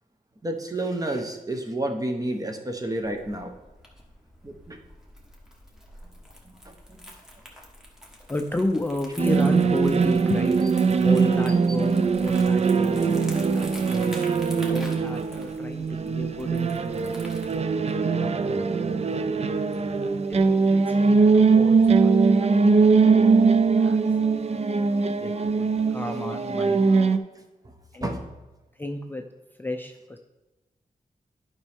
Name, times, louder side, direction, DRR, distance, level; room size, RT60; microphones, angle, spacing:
voice 1, 0.4-3.5 4.4-4.8 6.4-7.0 28.0-28.3, right 1 dB, 25° right, 4 dB, 1.0 m, -30 dB
Crumpling crinkling, 2.9-17.6, equal, 5° right, 1.5 m, -46 dB
voice 2, 8.3-10.6 10.9-14.2 14.7-17.3 18.0-19.4 19.7-19.9 20.3-22.6 23.1-24.0 24.9-26.9 27.9-28.2 28.7-29.3 29.6-30.2, left 1 dB, 15° left, 3 dB, 0.4 m, -33 dB
sound 1, 9.2-27.2, right 4 dB, 45° right, 0.4 m, -21 dB
11.0 x 5.3 x 3.5 m, 1.1 s
wide cardioid pair, 100°, 15 cm